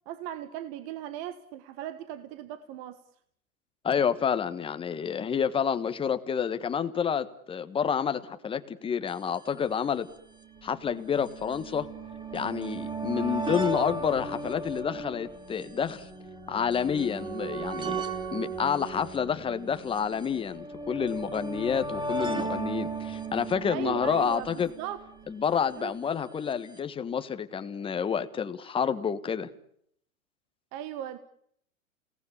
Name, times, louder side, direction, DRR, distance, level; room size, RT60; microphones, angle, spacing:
voice 1, 0.0-3.0 23.7-25.0 25.8-26.0 30.7-31.2, right 11 dB, 35° right, 1.6 m, -38 dB
voice 2, 3.8-10.1 10.6-11.9 12.3-16.0 16.5-18.0 18.3-24.7 25.3-29.5, left 7 dB, 10° left, 1.4 m, -29 dB
sound 1, 9.1-9.2 9.3-9.4 10.3-25.5 26.5-26.6 26.8-26.9, right 3 dB, 10° right, 2.9 m, -36 dB
30.0 x 18.5 x 9.8 m
hypercardioid pair, 125°, 42 cm